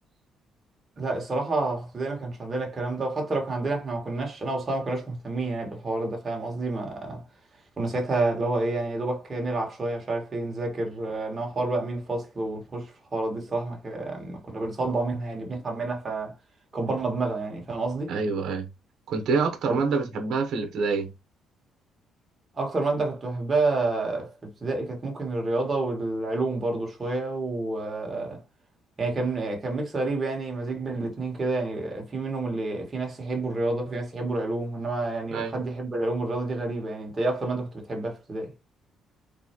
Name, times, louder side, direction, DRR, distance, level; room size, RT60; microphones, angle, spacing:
voice 1, 1.0-7.2 7.8-16.3 16.7-18.1 19.6-19.8 22.5-28.4 29.0-38.5, right 2 dB, 25° right, 1.6 m, -29 dB
voice 2, 18.1-18.7 19.1-21.1 35.3-35.5, right 4 dB, 65° right, 1.0 m, -26 dB
4.0 x 3.3 x 3.0 m
cardioid pair, 140°, 0 cm